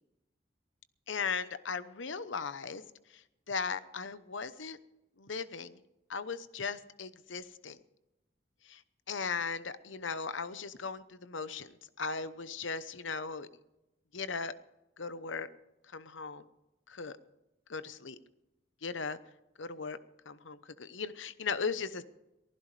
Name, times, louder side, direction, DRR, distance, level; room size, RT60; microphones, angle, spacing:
voice 1, 1.1-2.8 3.1-4.8 5.2-5.8 6.1-7.8 8.7-8.8 9.1-13.5 14.1-14.5 15.0-15.5 15.9-16.4 16.9-17.2 17.7-18.2 18.8-19.2 19.6-20.0 20.3-22.0, left 5 dB, 85° left, 13 dB, 0.9 m, -37 dB
23.5 x 15.5 x 3.3 m, 0.95 s
head